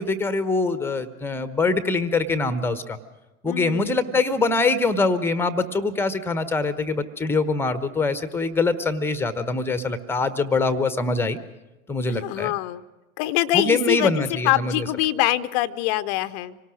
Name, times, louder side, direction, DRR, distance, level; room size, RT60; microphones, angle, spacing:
voice 1, 0.0-3.0 3.4-11.4 11.9-12.5 13.5-14.9, left 3 dB, 5° left, 13 dB, 0.9 m, -23 dB
voice 2, 3.5-4.2 12.1-12.8 13.2-16.6, left 16 dB, 35° left, 14 dB, 0.7 m, -24 dB
26.0 x 18.5 x 6.1 m, 1.1 s
figure-of-eight pair, 90°, 42 cm